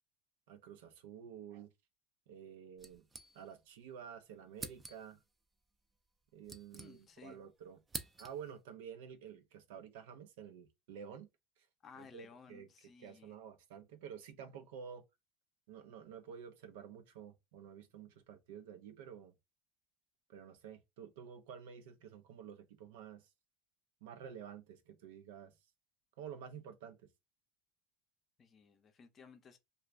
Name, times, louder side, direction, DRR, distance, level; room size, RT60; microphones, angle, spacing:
voice 1, 0.5-1.7 2.3-3.0 3.3-5.2 6.3-7.8 8.2-11.3 12.0-12.7 13.0-15.0 15.7-19.3 20.3-23.3 24.0-25.5 26.2-27.1, right 8 dB, 80° right, 0.6 m, -50 dB
sound 1, 2.8-3.8 4.0-4.1 4.5-5.2 6.1-7.3 7.6-8.6, right 3 dB, 15° right, 0.4 m, -48 dB
voice 2, 6.7-7.4 11.8-13.4 28.4-29.6, left 5 dB, 30° left, 0.6 m, -57 dB
2.4 x 2.3 x 3.2 m
supercardioid pair, 130°, 0 cm